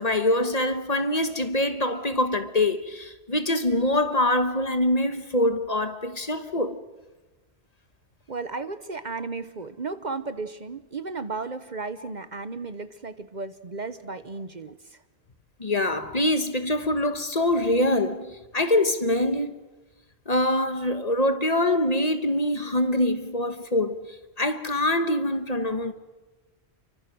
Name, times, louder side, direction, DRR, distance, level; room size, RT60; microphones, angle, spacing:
voice 1, 0.0-6.8 15.6-19.5 20.3-25.9, left 1 dB, 40° left, 1.3 m, -24 dB
voice 2, 8.3-14.8, right 4 dB, 45° right, 1.0 m, -34 dB
30.0 x 24.0 x 6.2 m
omnidirectional pair, 1.1 m